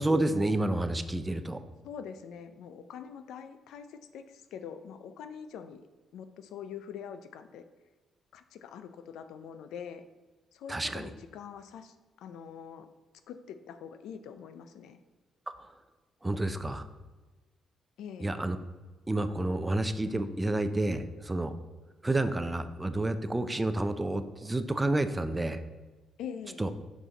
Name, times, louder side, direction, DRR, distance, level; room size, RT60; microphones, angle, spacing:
voice 1, 0.0-1.6 10.7-11.1 15.6-15.7 16.2-16.8 18.2-18.6 19.1-21.5 22.0-25.6 26.6-26.7, right 2 dB, 15° right, 10 dB, 0.5 m, -29 dB
voice 2, 1.8-5.9 6.1-7.6 8.3-10.0 10.5-12.9 13.3-15.0 18.0-18.4 26.2-26.6, left 7 dB, 80° left, 10 dB, 0.5 m, -44 dB
6.1 x 6.1 x 4.0 m, 1.3 s
cardioid pair, 90°, 0 cm